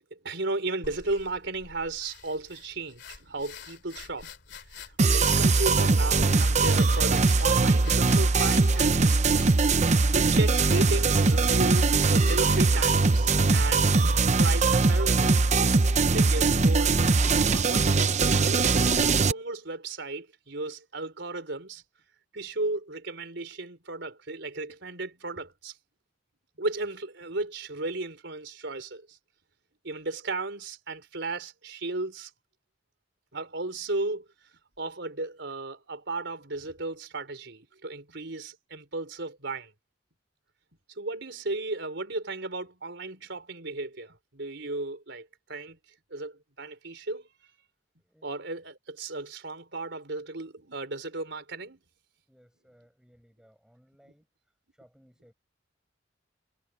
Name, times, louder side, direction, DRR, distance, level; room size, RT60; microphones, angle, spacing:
voice 1, 0.1-4.3 4.7-9.2 10.1-15.3 16.1-16.9 17.5-18.7 19.1-21.8 22.3-25.8 26.6-29.2 29.8-32.3 33.3-34.2 34.8-39.7 41.0-45.8 46.1-47.3 48.2-51.8, right 2 dB, 65° right, 4.7 m, -35 dB
sound 1, 0.8-14.3, left 5 dB, 65° left, 2.8 m, -47 dB
sound 2, 5.0-19.3, right 3 dB, 40° right, 0.8 m, -21 dB
voice 2, 52.3-54.3 54.7-55.3, equal, 5° right, 7.4 m, -61 dB
head